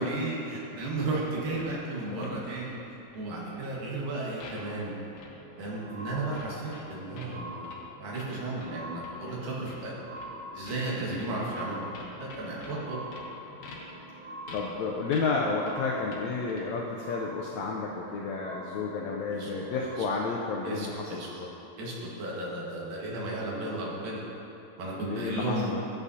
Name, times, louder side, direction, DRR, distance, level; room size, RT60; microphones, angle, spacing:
voice 1, 0.0-2.7 3.1-4.9 5.6-7.7 8.0-9.9 10.5-11.8 12.2-13.0 19.3-19.5 20.6-21.3 21.8-24.2 24.8-25.7, right 2 dB, 85° right, -5 dB, 3.3 m, -34 dB
sound 1, 1.6-3.9 4.4-4.6 5.1-5.3 5.6-7.3 7.6-7.8 8.1-8.3 8.6-8.7 9.0-9.1 9.7-9.8 10.2-10.3 10.6-10.8 11.1-11.6 11.9-12.8 13.1-13.2 13.6-13.8 14.5-14.6 15.1-15.3 15.7-15.8 16.1-16.2 16.5-16.6, left 4 dB, 65° left, 2.1 m, -48 dB
voice 2, 2.1-2.4 11.0-11.3 14.5-21.5 25.0-25.8, left 4 dB, 80° left, -2 dB, 1.6 m, -32 dB
sound 2, 5.0-21.9 22.6-22.7, equal, 60° right, 1.6 m, -46 dB
13.0 x 8.3 x 2.7 m, 3.0 s
omnidirectional pair, 3.9 m